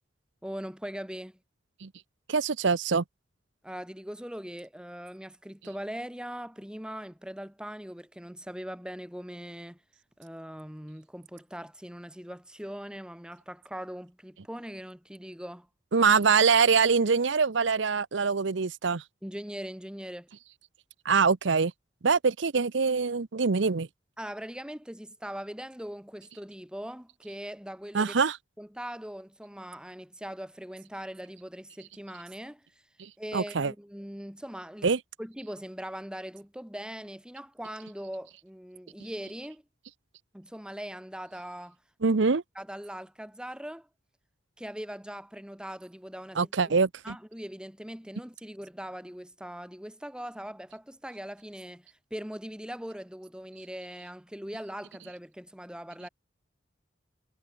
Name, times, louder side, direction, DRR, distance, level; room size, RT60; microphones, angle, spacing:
voice 1, 0.4-1.4 3.6-9.8 10.2-15.7 19.2-20.3 24.2-28.1 28.6-32.8 33.2-34.9 35.2-39.6 40.3-41.8 42.6-43.9 44.6-46.7 47.0-56.1, equal, 5° right, 2.1 m, -41 dB
voice 2, 2.3-3.0 15.9-19.0 21.0-21.7 22.0-23.9 27.9-28.4 33.0-33.7 34.8-35.0 42.0-42.4 46.4-47.1, right 5 dB, 65° right, 0.7 m, -24 dB
head